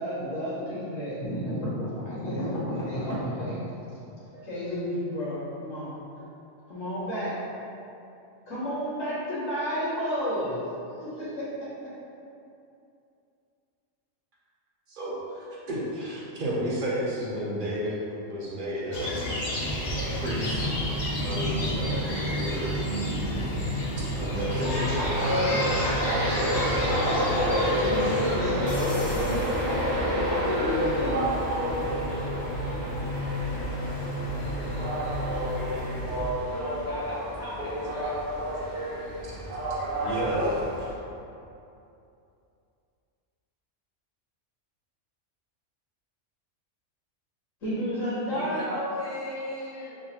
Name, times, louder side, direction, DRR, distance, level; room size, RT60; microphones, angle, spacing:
voice 1, 0.0-3.6 4.2-6.2 6.7-7.3 8.5-11.9 24.6-31.2 47.6-48.6, equal, 90° left, -10 dB, 1.8 m, -31 dB
voice 2, 14.9-19.3 19.9-20.7 21.2-22.7 24.1-25.1 40.0-40.9, equal, 45° right, -6 dB, 0.9 m, -32 dB
sound 1, 18.9-28.4, left 1 dB, 45° left, 0.5 m, -32 dB
sound 2, 19.6-36.3, equal, 75° left, 0.9 m, -34 dB
Train, 24.3-40.9, equal, 60° right, 2.0 m, -30 dB
voice 3, 36.8-38.2 48.3-50.0, left 1 dB, 15° right, -9 dB, 0.7 m, -35 dB
6.2 x 2.1 x 2.9 m, 2.6 s
omnidirectional pair, 1.3 m